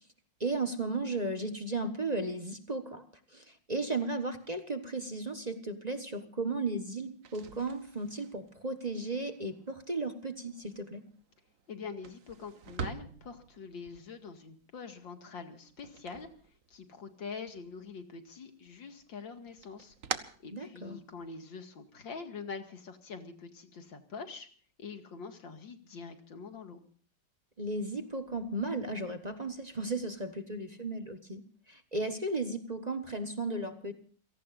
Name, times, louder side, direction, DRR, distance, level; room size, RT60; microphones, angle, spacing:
voice 1, 0.4-3.0 3.3-11.0 20.5-21.0 27.6-33.9, right 2 dB, 25° right, 8 dB, 1.3 m, -35 dB
sound 1, 7.1-17.1 17.4-18.3 18.7-21.3, right 7 dB, 50° right, 1.4 m, -46 dB
voice 2, 11.7-16.3 16.7-19.9 20.4-24.5 24.8-26.8, left 5 dB, 85° left, 6 dB, 2.9 m, -44 dB
29.0 x 18.0 x 2.6 m, 0.43 s
omnidirectional pair, 2.0 m